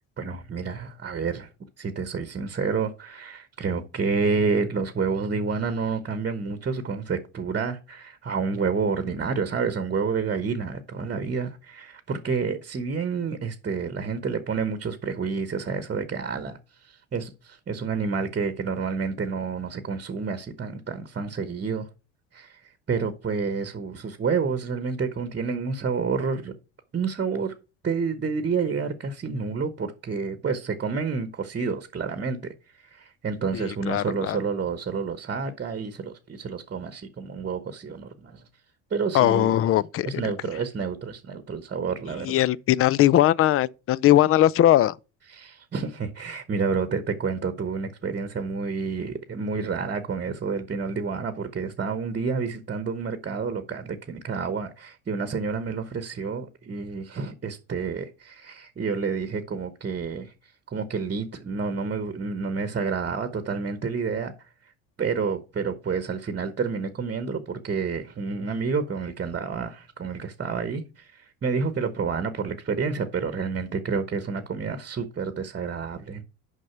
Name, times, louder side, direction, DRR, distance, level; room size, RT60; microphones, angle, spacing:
voice 1, 0.2-1.5 1.8-21.9 22.3-26.5 26.9-27.5 27.8-38.4 38.9-39.6 40.0-42.4 45.3-60.3 60.7-64.3 65.0-76.2, right 5 dB, 25° right, 1.0 m, -29 dB
voice 2, 33.5-34.4 39.1-40.1 42.2-45.0, left 13 dB, 35° left, 0.4 m, -20 dB
6.4 x 5.4 x 5.8 m
supercardioid pair, 80°, 39 cm